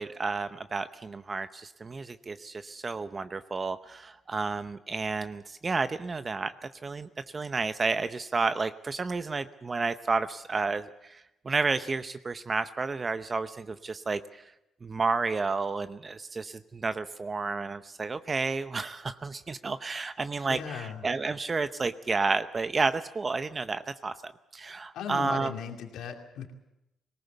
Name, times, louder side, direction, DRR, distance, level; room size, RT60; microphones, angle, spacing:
voice 1, 0.0-6.5 6.8-14.4 14.8-25.5, right 4 dB, 30° right, 11 dB, 0.8 m, -31 dB
voice 2, 20.5-21.0 24.9-26.5, left 7 dB, 80° left, 4 dB, 2.5 m, -37 dB
20.0 x 18.5 x 8.1 m, 0.90 s
cardioid pair, 90°, 0 cm